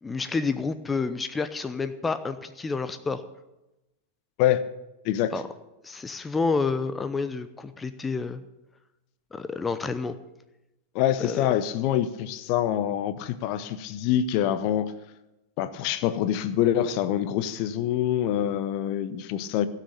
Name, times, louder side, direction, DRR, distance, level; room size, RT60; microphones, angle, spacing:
voice 1, 0.0-3.2 5.3-5.4 5.8-8.4 9.3-10.2 11.2-11.4, left 4 dB, 15° left, 11 dB, 0.7 m, -29 dB
voice 2, 10.9-14.9 15.6-19.7, left 11 dB, 45° left, 13 dB, 0.8 m, -25 dB
16.5 x 6.7 x 8.8 m, 0.97 s
figure-of-eight pair, 90°, 0 cm